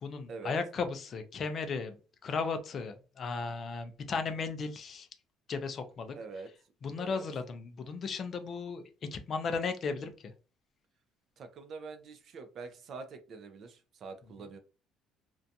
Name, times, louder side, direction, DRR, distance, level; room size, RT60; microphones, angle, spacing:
voice 1, 0.0-1.9 2.2-5.1 5.5-6.1 6.8-8.8 9.1-10.1, left 4 dB, 30° left, 8 dB, 0.4 m, -35 dB
voice 2, 6.1-6.5 7.0-7.3 11.4-14.6, right 4 dB, 35° right, 8 dB, 0.4 m, -45 dB
2.5 x 2.2 x 2.6 m, 0.34 s
cardioid pair, 175°, 0 cm